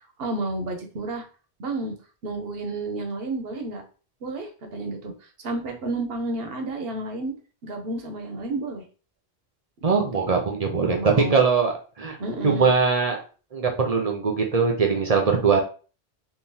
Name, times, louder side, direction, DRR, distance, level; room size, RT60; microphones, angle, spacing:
voice 1, 0.2-1.2 1.6-1.9 2.2-3.8 4.2-7.3 7.6-8.8 9.8-9.9 10.8-11.4 12.2-12.8, right 2 dB, 70° right, 5 dB, 0.9 m, -31 dB
voice 2, 9.8-11.0 11.3-12.2 12.4-13.2 13.5-15.6, right 5 dB, 45° right, 2 dB, 0.6 m, -21 dB
3.8 x 2.6 x 2.7 m, 0.37 s
omnidirectional pair, 1.1 m